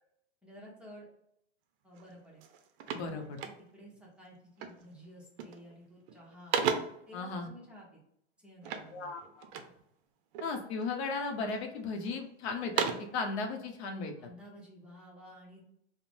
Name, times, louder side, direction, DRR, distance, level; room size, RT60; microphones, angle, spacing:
voice 1, 0.4-1.1 1.8-2.4 3.0-6.6 7.1-8.0 8.4-9.1 14.2-15.6, equal, 5° right, -5 dB, 0.8 m, -53 dB
sound 1, 2.0-2.1 2.4-4.0 4.6-4.9 5.2-5.7 6.1-7.1 8.6-9.8 10.3-11.0 11.5-12.2 12.5-13.2, right 7 dB, 55° right, 0.5 m, -36 dB
voice 2, 2.9-3.4 7.1-7.5 8.9-9.5 10.4-14.1, left 4 dB, 75° left, 5 dB, 0.7 m, -36 dB
3.1 x 2.0 x 2.5 m, 0.74 s
supercardioid pair, 130°, 33 cm